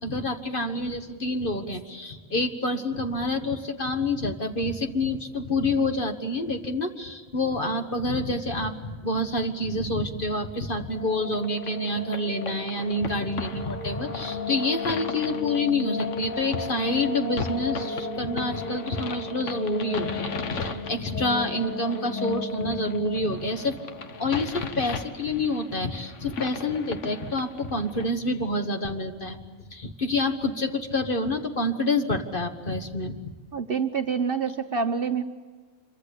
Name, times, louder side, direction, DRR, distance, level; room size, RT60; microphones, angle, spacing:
voice 1, 0.0-23.8 24.2-29.4 29.7-33.3, left 2 dB, 40° left, 6 dB, 1.6 m, -28 dB
sound 1, 10.6-25.4, left 3 dB, 80° left, 4.8 m, -35 dB
sound 2, 11.3-28.0, left 4 dB, 60° left, 1.5 m, -38 dB
voice 2, 33.5-35.2, right 6 dB, 45° right, 7 dB, 1.1 m, -26 dB
26.0 x 23.5 x 8.4 m, 1.4 s
omnidirectional pair, 1.4 m